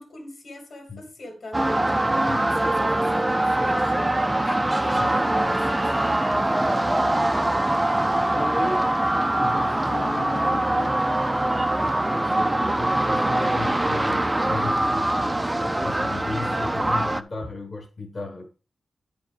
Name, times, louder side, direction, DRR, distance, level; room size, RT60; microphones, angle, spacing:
voice 1, 0.0-1.6 2.1-7.3, left 1 dB, 55° left, 2.6 m, -42 dB
sound 1, 1.5-17.2, right 1 dB, 10° right, 0.5 m, -23 dB
voice 2, 2.3-2.7 4.9-5.1 5.5-5.6 8.3-18.5, left 3 dB, 30° left, 1.3 m, -35 dB
10.0 x 5.2 x 4.9 m
wide cardioid pair, 150°, 0 cm